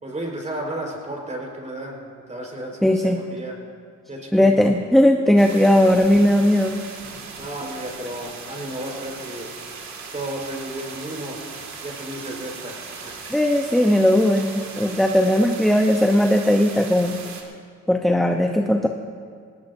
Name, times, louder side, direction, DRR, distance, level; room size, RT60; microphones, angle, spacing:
voice 1, 0.0-3.6 4.1-4.7 7.4-9.5 10.1-11.4 11.8-13.1, right 1 dB, 25° right, -1 dB, 4.5 m, -33 dB
voice 2, 2.8-3.2 4.3-6.8 13.3-17.2 17.9-18.9, left 1 dB, ahead, 3 dB, 0.8 m, -18 dB
sound 1, 5.4-17.4, right 5 dB, 65° right, 2.2 m, -38 dB
18.5 x 18.5 x 2.7 m, 2.2 s
cardioid pair, 90°, 30 cm